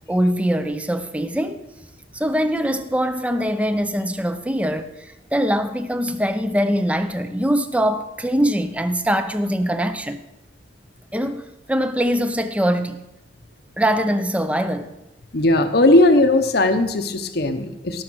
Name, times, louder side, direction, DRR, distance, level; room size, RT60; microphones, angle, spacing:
voice 1, 0.1-1.6 2.1-10.2 11.1-13.0 13.8-15.0, equal, 5° right, 0.7 m, -22 dB
voice 2, 15.3-18.0, left 2 dB, 55° left, 1.0 m, -17 dB
17.5 x 6.5 x 6.2 m
head